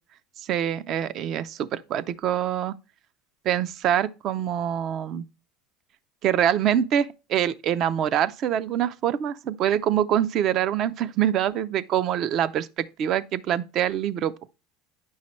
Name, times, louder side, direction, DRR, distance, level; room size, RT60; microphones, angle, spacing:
voice 1, 0.4-2.7 3.4-5.2 6.2-14.3, right 10 dB, 45° right, 0.5 m, -25 dB
9.5 x 5.6 x 3.1 m
supercardioid pair, 130°, 0 cm